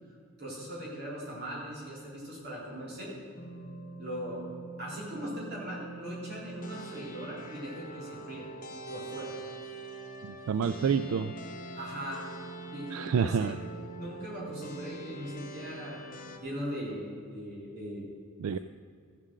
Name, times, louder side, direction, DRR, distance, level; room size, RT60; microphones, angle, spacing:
voice 1, 0.4-3.1 4.0-4.5 4.8-8.5 8.9-9.3 11.8-12.2 12.7-13.6 13.9-16.0 16.4-18.0, equal, 50° right, -5 dB, 3.7 m, -39 dB
sound 1, 3.4-16.4, right 2 dB, 40° left, 1.0 m, -44 dB
voice 2, 10.2-11.3 12.9-13.6 18.4-18.6, right 6 dB, 80° right, 12 dB, 0.3 m, -28 dB
14.0 x 7.5 x 6.4 m, 2.2 s
head